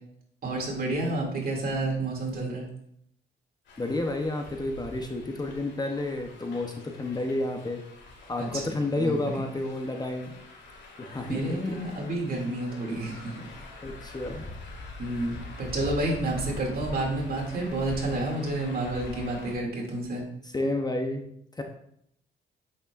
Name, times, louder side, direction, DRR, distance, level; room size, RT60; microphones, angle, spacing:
voice 1, 0.4-2.6 8.4-9.4 11.2-13.4 15.0-20.2, right 2 dB, 50° right, -1 dB, 2.5 m, -30 dB
sound 1, 3.7-19.5, left 2 dB, 65° left, 2.2 m, -44 dB
voice 2, 3.8-7.8 8.3-10.3 11.0-11.9 13.8-14.5 19.1-19.3 20.4-21.3 21.5-21.6, left 2 dB, 20° left, 3 dB, 0.8 m, -31 dB
8.2 x 6.5 x 2.5 m, 0.71 s
cardioid pair, 90°, 20 cm